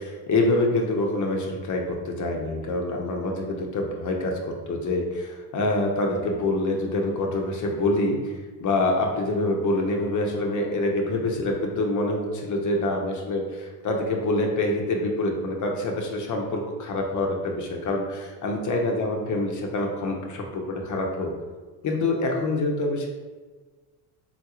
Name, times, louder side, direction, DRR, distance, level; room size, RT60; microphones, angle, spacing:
voice 1, 0.0-8.3 8.6-21.3 21.8-23.1, left 2 dB, 40° left, 1 dB, 0.8 m, -26 dB
3.8 x 2.4 x 2.9 m, 1.3 s
supercardioid pair, 75°, 46 cm